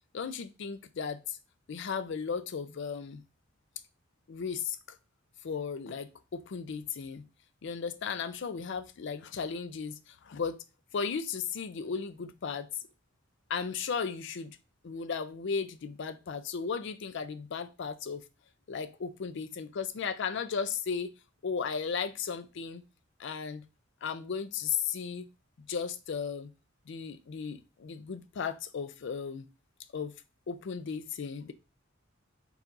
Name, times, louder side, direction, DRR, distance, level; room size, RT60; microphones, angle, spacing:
voice 1, 0.1-1.4 1.7-3.2 4.3-5.0 5.4-7.3 7.6-10.6 10.9-12.7 13.5-14.6 14.8-18.2 18.7-21.1 21.4-22.8 23.2-23.7 24.0-25.3 25.6-26.5 26.9-29.4 29.9-30.2 30.5-31.5, left 6 dB, 65° left, 0.4 m, -35 dB
4.5 x 4.1 x 2.5 m
head